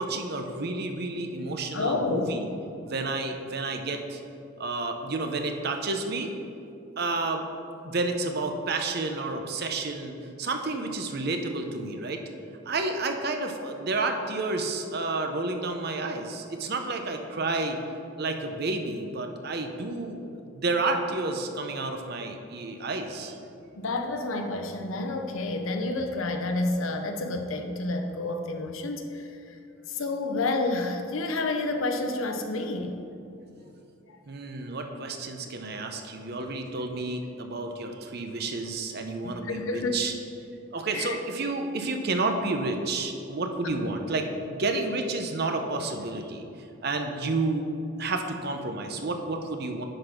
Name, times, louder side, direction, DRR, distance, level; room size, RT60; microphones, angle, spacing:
voice 1, 0.0-2.4 2.8-4.2 4.6-6.3 7.0-7.4 7.8-12.2 12.7-17.8 18.2-23.4 34.3-40.1 40.7-46.5 46.8-47.7 48.0-49.8, right 3 dB, 50° right, 5 dB, 0.7 m, -30 dB
voice 2, 1.7-2.3 23.8-29.4 29.9-32.9 39.2-40.0 40.9-41.2 43.8-43.9, left 2 dB, 80° left, 5 dB, 0.8 m, -29 dB
10.0 x 4.0 x 5.9 m, 2.7 s
head